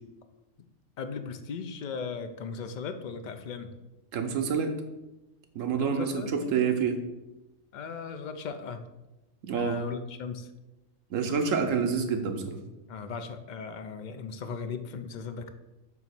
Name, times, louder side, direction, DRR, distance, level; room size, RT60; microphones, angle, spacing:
voice 1, 1.0-3.7 5.8-6.8 7.7-8.8 9.5-10.5 12.9-15.5, left 5 dB, 55° left, 8 dB, 0.5 m, -37 dB
voice 2, 4.1-4.7 5.5-7.0 9.4-9.8 11.1-12.6, right 6 dB, 90° right, 6 dB, 1.2 m, -27 dB
7.4 x 3.0 x 5.9 m, 1.0 s
omnidirectional pair, 1.3 m